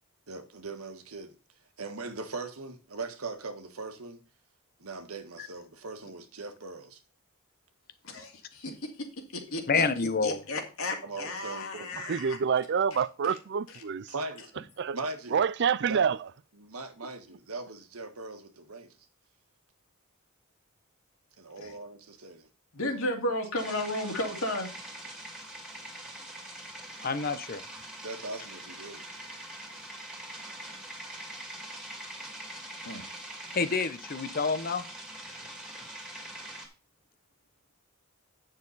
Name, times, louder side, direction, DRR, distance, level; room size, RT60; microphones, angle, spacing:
voice 1, 0.3-1.3 1.8-4.2 4.8-7.0 11.0-11.9 14.1-14.5 14.9-15.4 15.9-16.0 16.6-18.9 21.4-22.5 23.0-23.1 28.0-29.0, right 3 dB, 85° right, 1.6 m, -40 dB
voice 2, 8.0-9.1 9.3-12.4 13.2-13.4 21.6-21.7 22.7-24.7 32.8-33.0, left 1 dB, 70° left, 2.4 m, -34 dB
voice 3, 9.7-10.4 27.0-27.6 33.5-34.8, left 4 dB, 45° left, 0.9 m, -28 dB
voice 4, 12.0-14.1 14.8-15.0 15.3-16.3, right 6 dB, 55° right, 0.4 m, -27 dB
sound 1, 23.6-36.7, right 1 dB, 5° right, 2.3 m, -43 dB
9.5 x 6.6 x 4.1 m
head